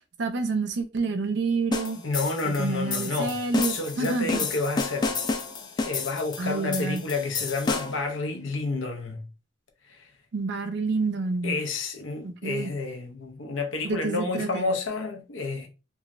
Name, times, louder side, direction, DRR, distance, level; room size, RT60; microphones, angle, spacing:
voice 1, 0.2-2.0 2.4-4.5 6.4-7.0 10.3-11.6 12.2-12.7 13.8-14.6, right 3 dB, 65° right, 0.5 m, -28 dB
sound 1, 1.7-8.1, left 4 dB, 25° left, 0.3 m, -31 dB
voice 2, 2.0-3.4 3.7-5.1 5.8-9.2 10.0-10.1 11.4-15.7, left 3 dB, 90° left, 0.7 m, -30 dB
3.1 x 2.4 x 2.4 m
head